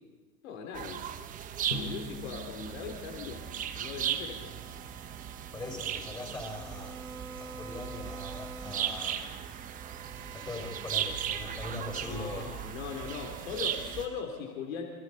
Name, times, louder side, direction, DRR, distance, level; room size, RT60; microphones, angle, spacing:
voice 1, 0.4-1.1 1.7-3.5 3.8-4.6 12.0-14.8, left 6 dB, 60° left, 2 dB, 3.3 m, -39 dB
sound 1, 0.7-14.1, right 9 dB, 20° right, 1.0 m, -37 dB
Drum, 1.7-4.4, left 2 dB, 90° left, 2.4 m, -43 dB
sound 2, 3.3-14.2, right 5 dB, 75° right, 3.1 m, -49 dB
voice 2, 5.5-9.3 10.3-12.5, left 2 dB, 10° left, 2 dB, 5.5 m, -41 dB
29.5 x 25.0 x 4.2 m, 1.3 s
hypercardioid pair, 135°, 45 cm